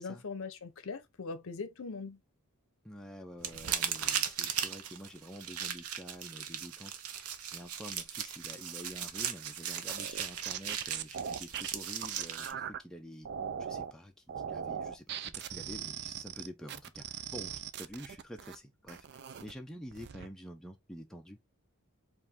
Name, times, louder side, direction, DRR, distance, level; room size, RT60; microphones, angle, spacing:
voice 1, 0.0-2.2, left 4 dB, 65° left, 0.6 m, -41 dB
voice 2, 2.8-13.3 13.6-21.4, equal, 5° left, 0.5 m, -48 dB
sound 1, 3.4-12.5, right 8 dB, 80° right, 0.8 m, -37 dB
sound 2, 9.9-12.8 13.3-13.9 14.3-18.6 18.9-19.5 19.9-20.3, right 8 dB, 50° right, 0.4 m, -40 dB
4.7 x 2.5 x 3.6 m
head